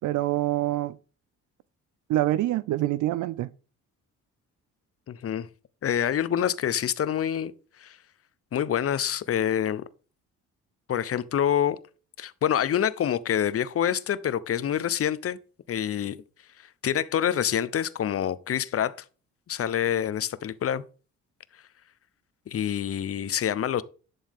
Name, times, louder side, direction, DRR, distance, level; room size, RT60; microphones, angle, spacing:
voice 1, 0.0-1.0 2.1-3.5, right 15 dB, 75° right, 0.5 m, -25 dB
voice 2, 5.1-5.5 5.8-7.5 7.8-8.0 8.5-9.8 10.9-11.8 12.2-15.4 15.7-16.2 16.8-18.9 19.5-20.8 22.5-23.8, left 9 dB, 50° left, 0.8 m, -26 dB
11.0 x 7.1 x 3.6 m
cardioid pair, 90°, 30 cm